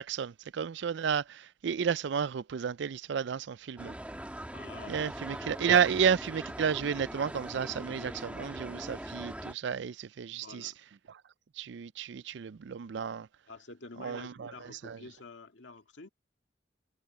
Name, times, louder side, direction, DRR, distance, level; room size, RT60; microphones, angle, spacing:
voice 1, 0.0-3.9 4.9-10.7 11.6-13.3 14.0-14.5 14.8-15.0, right 7 dB, 70° right, 0.4 m, -31 dB
sound 1, 3.8-9.5, right 1 dB, 10° right, 1.5 m, -41 dB
voice 2, 4.5-5.1 10.3-10.8 13.5-16.1, left 3 dB, 80° left, 2.0 m, -48 dB
head